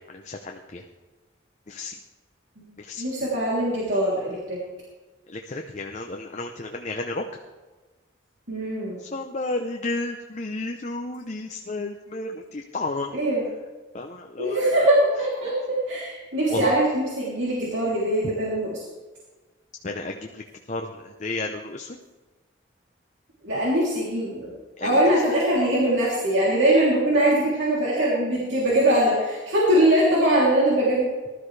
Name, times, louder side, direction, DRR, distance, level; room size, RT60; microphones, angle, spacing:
voice 1, 0.1-0.8 1.7-1.9 2.8-3.1 5.3-7.2 9.0-13.2 13.9-14.7 16.5-16.7 19.8-22.0 24.8-25.4 27.1-27.3, left 2 dB, 35° left, 3 dB, 0.7 m, -32 dB
voice 2, 3.0-4.6 8.5-9.0 13.1-13.4 14.4-18.8 23.4-24.5 24.8-31.1, right 1 dB, 70° right, -6 dB, 3.2 m, -22 dB
19.5 x 13.0 x 3.3 m, 1.3 s
head